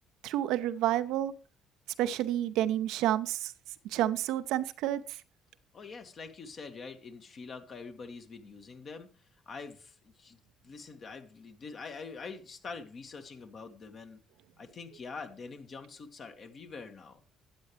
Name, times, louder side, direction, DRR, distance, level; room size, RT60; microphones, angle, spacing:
voice 1, 0.2-1.3 2.0-3.5 3.8-5.2, right 12 dB, 65° right, 12 dB, 0.6 m, -29 dB
voice 2, 5.7-9.1 9.5-10.4 10.6-14.2 14.6-17.2, left 4 dB, 45° left, 6 dB, 1.8 m, -45 dB
12.5 x 8.9 x 3.2 m, 0.36 s
hypercardioid pair, 50°, 0 cm